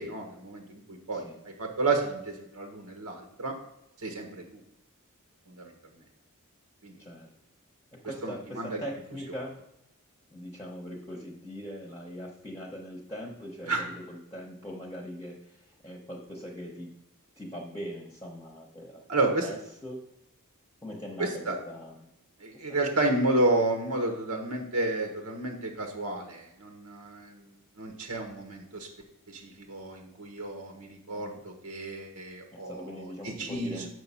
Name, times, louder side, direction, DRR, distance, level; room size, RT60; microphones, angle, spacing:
voice 1, 0.0-3.5 4.0-4.6 5.5-5.7 6.8-6.9 8.2-8.8 13.7-13.9 19.1-19.5 21.2-21.6 22.4-28.9 29.3-32.9 33.2-33.8, right 2 dB, 85° right, 3 dB, 1.3 m, -31 dB
voice 2, 7.9-9.6 10.3-16.9 17.4-19.0 19.4-20.0 20.8-22.1 22.5-22.6 22.9-23.0 31.1-31.4 32.5-33.9, equal, 15° left, -2 dB, 0.9 m, -41 dB
6.7 x 5.3 x 5.5 m, 0.86 s
head